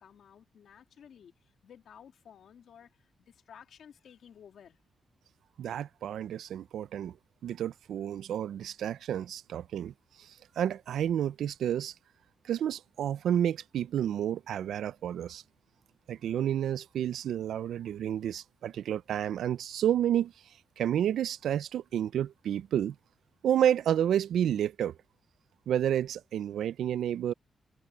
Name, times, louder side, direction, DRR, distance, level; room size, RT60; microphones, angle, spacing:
voice 1, 0.0-4.8, left 8 dB, 65° left, 2.7 m, -54 dB
voice 2, 5.6-7.1 7.4-9.9 10.6-11.9 12.5-15.4 16.1-20.3 20.8-22.9 23.4-25.0 25.7-27.3, right 10 dB, 90° right, 0.4 m, -30 dB
wide cardioid pair, 170°, 0 cm